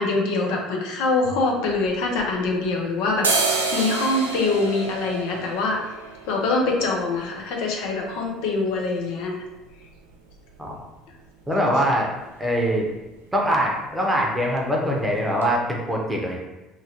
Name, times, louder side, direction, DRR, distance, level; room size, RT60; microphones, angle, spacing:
voice 1, 0.0-5.8 6.3-9.3, left 3 dB, 65° left, 0 dB, 0.5 m, -24 dB
sound 1, 1.7-2.7 3.1-10.8 11.1-11.2 11.4-12.0 12.3-12.5 12.8-13.0 13.3-14.0 14.4-14.5 15.0-15.1 15.4-15.5, right 3 dB, 90° right, 0.4 m, -30 dB
voice 2, 11.5-12.1 12.4-12.9 13.3-16.4, equal, 10° right, -1 dB, 0.7 m, -23 dB
2.9 x 2.4 x 2.8 m, 1.1 s
hypercardioid pair, 65°, 0 cm